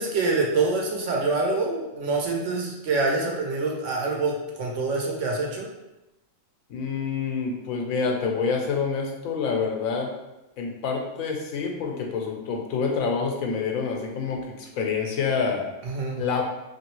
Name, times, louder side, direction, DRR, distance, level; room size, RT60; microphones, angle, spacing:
voice 1, 0.0-5.7 15.8-16.2, right 3 dB, 65° right, -1 dB, 1.0 m, -26 dB
voice 2, 6.7-10.1 10.6-15.7 16.2-16.4, left 5 dB, 90° left, 1 dB, 1.1 m, -27 dB
3.0 x 2.7 x 3.0 m, 0.95 s
omnidirectional pair, 1.4 m